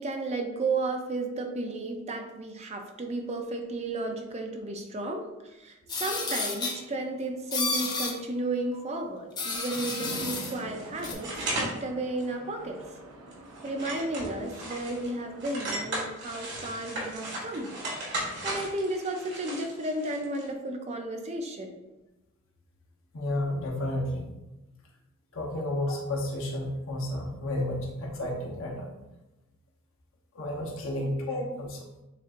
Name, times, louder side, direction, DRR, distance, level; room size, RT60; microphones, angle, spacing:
voice 1, 0.0-12.8 13.6-17.8 18.1-21.7 31.0-31.1, right 2 dB, 30° right, 4 dB, 0.5 m, -33 dB
sound 1, 5.9-6.8 7.5-8.1 9.4-10.5 11.0-11.1, left 3 dB, 20° left, 0.6 m, -31 dB
Chatter / Traffic noise roadway noise / Train, 10.0-15.9, right 1 dB, 85° right, 0.6 m, -46 dB
sound 2, 10.3-11.8 12.2-12.3 12.8-13.0 13.3-15.1 15.4-20.5, right 1 dB, 55° right, 1.5 m, -36 dB
voice 2, 23.1-24.3 25.3-28.9 30.3-31.8, left 1 dB, 65° left, -1 dB, 1.0 m, -31 dB
7.2 x 2.6 x 2.5 m, 0.98 s
head